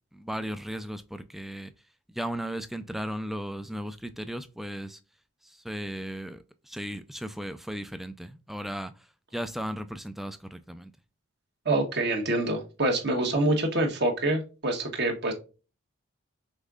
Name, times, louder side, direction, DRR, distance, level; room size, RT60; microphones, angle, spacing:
voice 1, 0.1-1.7 2.1-5.0 5.4-8.9 9.3-10.9, equal, ahead, 0.3 m, -36 dB
voice 2, 11.6-15.3, right 2 dB, 50° right, 1.2 m, -26 dB
5.4 x 3.5 x 2.4 m
head